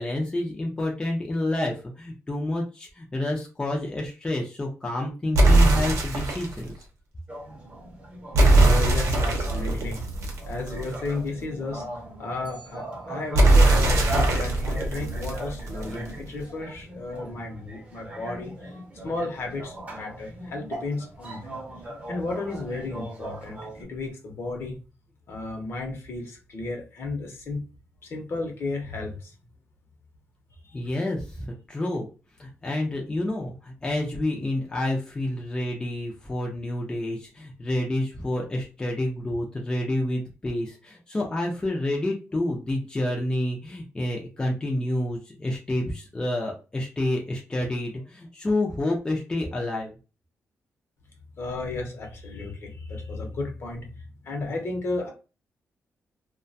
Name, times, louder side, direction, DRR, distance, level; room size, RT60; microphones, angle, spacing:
voice 1, 0.0-6.9 30.7-32.1 32.4-50.0, left 1 dB, 15° left, -1 dB, 0.4 m, -29 dB
sound 1, 5.3-6.6 8.3-11.1 13.3-16.1, right 2 dB, 70° right, 0.7 m, -20 dB
sound 2, 7.3-23.8, right 1 dB, 25° right, 0.7 m, -39 dB
voice 2, 8.5-10.0 10.4-11.8 12.2-18.7 19.0-21.6 22.1-24.8 25.3-27.6 28.0-29.3 30.6-30.8 51.4-53.9 54.2-55.1, left 2 dB, 55° left, 2 dB, 0.7 m, -33 dB
2.4 x 2.2 x 2.6 m, 0.33 s
wide cardioid pair, 140°, 5 cm